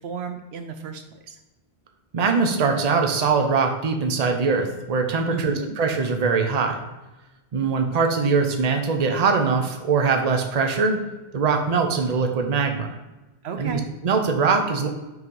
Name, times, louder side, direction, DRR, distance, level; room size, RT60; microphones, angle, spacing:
voice 1, 0.0-1.3 5.3-5.8 13.4-13.8, right 6 dB, 70° right, 7 dB, 0.8 m, -34 dB
voice 2, 2.1-6.8 7.5-11.1 11.3-12.9 13.6-14.9, right 4 dB, 40° right, 4 dB, 0.7 m, -22 dB
5.5 x 4.0 x 5.3 m, 1.1 s
omnidirectional pair, 1.1 m